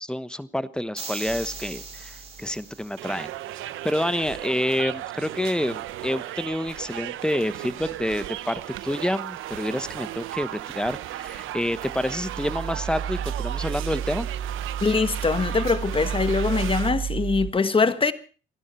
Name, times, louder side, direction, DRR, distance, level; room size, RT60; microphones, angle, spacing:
voice 1, 0.0-3.3 3.8-14.3, left 1 dB, 5° left, 1.1 m, -28 dB
sound 1, 1.0-3.2, right 4 dB, 30° right, 5.3 m, -39 dB
sound 2, 1.3-2.8 11.4-17.5, right 8 dB, 45° right, 1.4 m, -32 dB
sound 3, 3.0-16.9, right 14 dB, 85° right, 1.0 m, -36 dB
voice 2, 14.8-18.1, left 4 dB, 25° left, 1.4 m, -23 dB
28.5 x 11.0 x 4.4 m
cardioid pair, 90°, 20 cm